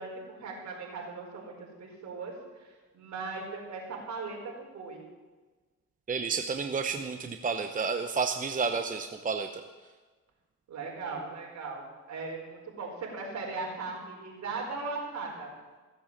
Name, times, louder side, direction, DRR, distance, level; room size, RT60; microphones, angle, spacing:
voice 1, 0.0-1.5 1.8-2.3 2.9-5.0 10.7-15.5, right 3 dB, 65° right, -1 dB, 4.7 m, -38 dB
voice 2, 6.1-9.6, right 5 dB, 25° right, 6 dB, 0.8 m, -31 dB
16.0 x 8.0 x 7.3 m, 1.3 s
cardioid pair, 90°, 30 cm